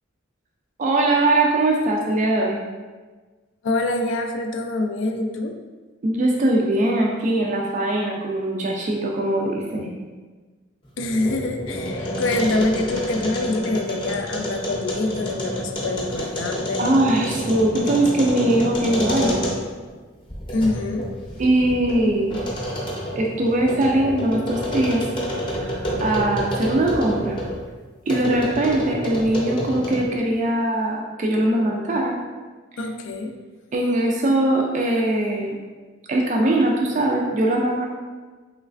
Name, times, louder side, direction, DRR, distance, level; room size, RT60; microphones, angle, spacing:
voice 1, 0.8-2.6 6.0-9.9 16.8-19.4 21.4-22.4 23.2-25.0 25.6-27.4 28.1-32.2 33.7-35.6 36.1-37.9, right 1 dB, 40° right, -1 dB, 0.3 m, -21 dB
voice 2, 3.6-5.6 11.0-16.8 20.5-21.0 32.8-33.3, left 2 dB, 70° left, 5 dB, 0.4 m, -25 dB
sound 1, 10.9-19.8 20.3-27.6 28.1-30.2, equal, 25° left, 0.6 m, -29 dB
3.1 x 3.1 x 2.4 m, 1.3 s
head